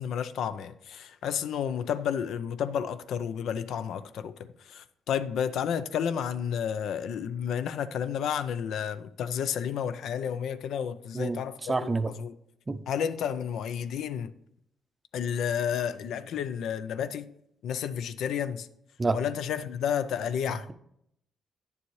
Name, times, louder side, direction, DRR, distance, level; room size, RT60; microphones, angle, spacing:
voice 1, 0.0-12.4 12.9-14.3 15.1-17.3 17.6-18.7 19.1-20.7, left 8 dB, 75° left, 0.4 m, -31 dB
voice 2, 11.7-12.1 12.7-12.8 19.0-19.2, right 3 dB, 25° right, 0.5 m, -27 dB
9.6 x 7.0 x 3.1 m
cardioid pair, 90°, 0 cm